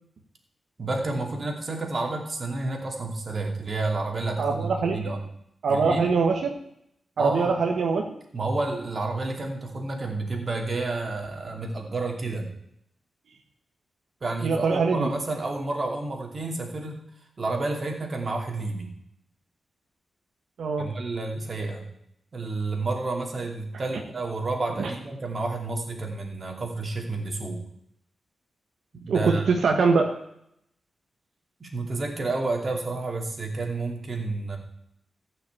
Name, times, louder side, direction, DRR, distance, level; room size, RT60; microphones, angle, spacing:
voice 1, 0.8-5.2 5.7-6.1 7.2-7.5 8.3-12.5 14.2-17.0 17.4-18.9 20.8-21.8 22.3-27.6 28.9-29.4 31.6-34.6, right 3 dB, 40° right, 2 dB, 2.6 m, -30 dB
voice 2, 4.4-5.1 5.6-6.5 7.2-8.1 14.4-15.1 20.6-20.9 24.8-24.9 29.1-30.1, right 4 dB, 75° right, 3 dB, 1.3 m, -23 dB
14.5 x 5.9 x 8.6 m, 0.75 s
wide cardioid pair, 120°, 0 cm